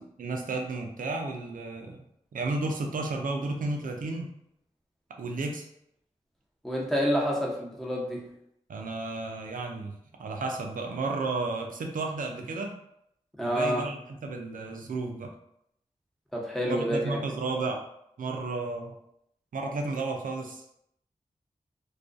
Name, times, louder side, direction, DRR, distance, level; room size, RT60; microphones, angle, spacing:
voice 1, 0.2-2.0 2.3-4.3 5.2-5.6 8.7-9.9 10.2-12.7 13.4-15.3 16.7-17.8 18.2-19.0 19.5-20.6, right 3 dB, 85° right, 2 dB, 0.4 m, -32 dB
voice 2, 6.6-8.2 13.4-13.9 16.3-17.2, equal, ahead, -3 dB, 0.8 m, -28 dB
2.3 x 2.2 x 2.5 m, 0.75 s
cardioid pair, 40°, 14 cm